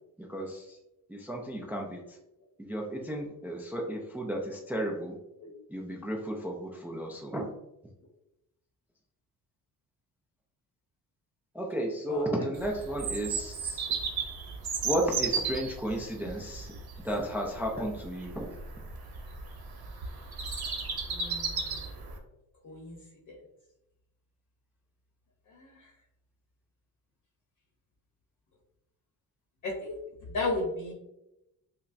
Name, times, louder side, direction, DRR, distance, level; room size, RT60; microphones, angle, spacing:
voice 1, 0.3-0.8 1.1-2.2 2.6-5.2 5.7-7.5 11.5-13.9 14.8-16.7 17.0-18.5, right 1 dB, 5° right, 0 dB, 0.4 m, -33 dB
Bird vocalization bird call bird song, 12.5-22.2, right 5 dB, 75° right, 0.8 m, -35 dB
voice 2, 21.1-21.6 22.6-23.0 23.3-23.4 25.5-25.7 29.6-30.0 30.3-30.9, left 2 dB, 50° left, -1 dB, 0.8 m, -34 dB
5.4 x 2.1 x 2.5 m, 0.89 s
cardioid pair, 115°, 37 cm